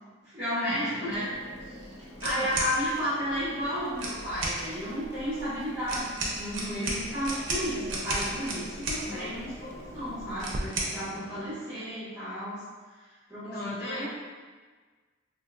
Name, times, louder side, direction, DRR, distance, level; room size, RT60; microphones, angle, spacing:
voice 1, 0.3-1.2 2.0-9.5 9.9-12.6 13.3-14.1, equal, 15° right, -14 dB, 1.0 m, -32 dB
sound 1, 0.6-11.5, equal, 15° left, 1.0 m, -47 dB
Crackle, 1.1-10.6, right 1 dB, 35° right, 0.3 m, -46 dB
voice 2, 2.2-2.6 9.0-9.4 13.5-14.1, left 1 dB, 50° left, -1 dB, 0.4 m, -37 dB
sound 2, 2.2-2.7 3.9-4.6 5.9-9.0 10.4-10.9, right 2 dB, 70° right, 0.6 m, -32 dB
3.6 x 2.6 x 2.4 m, 1.4 s
head